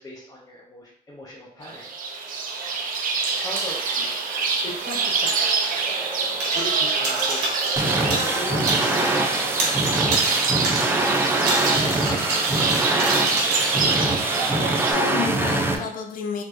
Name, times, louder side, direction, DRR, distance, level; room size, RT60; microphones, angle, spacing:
voice 1, 0.0-2.7 3.4-4.1 4.6-5.9 6.5-10.5, left 1 dB, 20° left, -4 dB, 0.7 m, -39 dB
sound 1, 1.6-14.9, right 4 dB, 55° right, 0.6 m, -25 dB
sound 2, 6.4-6.8 7.0-9.2 9.4-13.9, right 2 dB, 85° right, 1.4 m, -29 dB
sound 3, 7.8-15.8, right 2 dB, 15° right, 0.4 m, -24 dB
voice 2, 14.5-16.4, left 6 dB, 55° left, 4 dB, 0.7 m, -30 dB
4.2 x 2.9 x 2.6 m, 0.67 s
cardioid pair, 110°, 17 cm